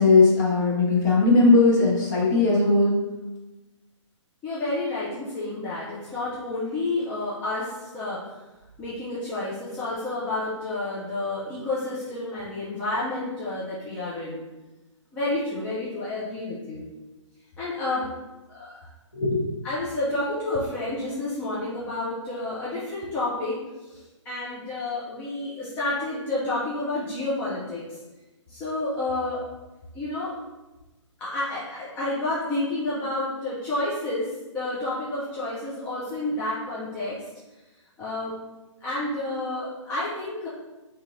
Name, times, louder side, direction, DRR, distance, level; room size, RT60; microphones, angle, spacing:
voice 1, 0.0-2.9 19.1-19.4, left 3 dB, 35° left, -4 dB, 1.0 m, -18 dB
voice 2, 4.4-8.2 8.8-14.4 15.1-16.9 17.6-18.1 18.5-18.9 19.6-28.0 28.5-29.4 29.9-30.4 31.2-37.2 38.0-38.3 38.8-40.5, left 2 dB, 10° left, -10 dB, 0.3 m, -30 dB
3.7 x 2.7 x 2.5 m, 1.1 s
figure-of-eight pair, 135°, 16 cm